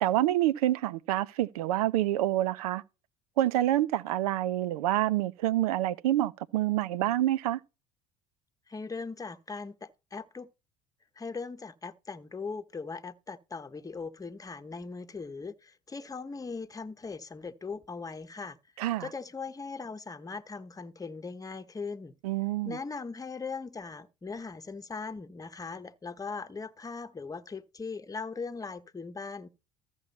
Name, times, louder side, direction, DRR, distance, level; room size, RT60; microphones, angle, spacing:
voice 1, 0.0-2.8 3.4-7.6 18.8-19.1 22.2-22.8, right 14 dB, 80° right, 0.6 m, -27 dB
voice 2, 8.7-10.5 11.2-18.6 19.0-22.2 22.6-29.5, left 4 dB, 20° left, 1.0 m, -39 dB
14.0 x 6.2 x 4.2 m
hypercardioid pair, 70°, 19 cm